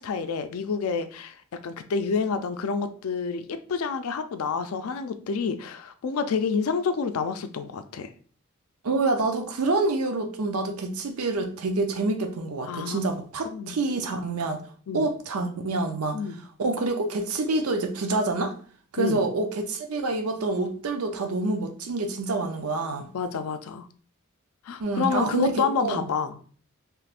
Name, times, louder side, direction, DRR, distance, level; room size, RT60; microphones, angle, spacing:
voice 1, 0.0-1.4 1.6-8.1 12.7-13.1 13.4-13.8 14.9-15.1 16.1-16.4 19.0-19.2 23.1-23.9 24.7-26.4, left 5 dB, 85° left, 0.4 m, -28 dB
voice 2, 8.8-14.6 14.9-16.2 16.6-18.6 18.9-23.1 24.8-26.0, right 3 dB, 85° right, 0.5 m, -27 dB
3.4 x 3.0 x 2.4 m
head